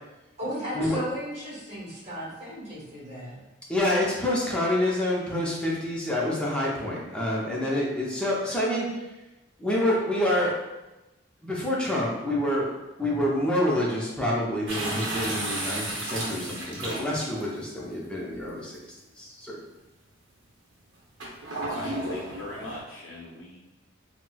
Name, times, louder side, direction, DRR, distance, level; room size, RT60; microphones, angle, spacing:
voice 1, 0.4-3.4, equal, 35° right, -7 dB, 1.2 m, -35 dB
voice 2, 3.7-9.1 9.6-10.5 11.4-12.7 13.0-18.8 19.2-19.6, left 1 dB, 5° left, -5 dB, 0.5 m, -27 dB
sound 1, 14.7-17.4 18.3-18.4 21.2-22.8, right 1 dB, 60° right, 0.8 m, -33 dB
voice 3, 21.5-23.6, left 1 dB, 80° left, -4 dB, 0.5 m, -42 dB
4.1 x 2.0 x 2.2 m, 1.0 s
head